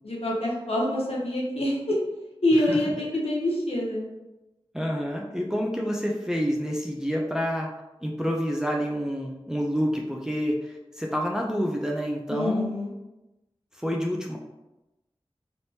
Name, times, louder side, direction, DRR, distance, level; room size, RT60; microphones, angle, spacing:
voice 1, 0.0-2.0 2.4-4.1 12.3-12.9, left 1 dB, 75° left, -3 dB, 0.8 m, -26 dB
voice 2, 4.7-7.7 8.0-12.7 13.8-14.4, equal, 5° right, -1 dB, 0.4 m, -28 dB
3.3 x 2.9 x 2.7 m, 0.99 s
wide cardioid pair, 45°, 10 cm